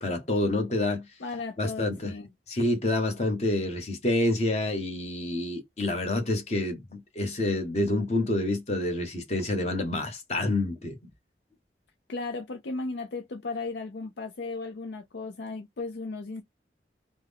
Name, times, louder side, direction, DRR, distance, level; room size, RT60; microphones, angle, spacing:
voice 1, 0.0-1.1 1.6-2.1 2.5-10.9, left 2 dB, 40° left, 1.0 m, -28 dB
voice 2, 1.2-2.3 12.1-16.4, left 3 dB, 80° left, 0.5 m, -35 dB
3.4 x 2.1 x 3.5 m
head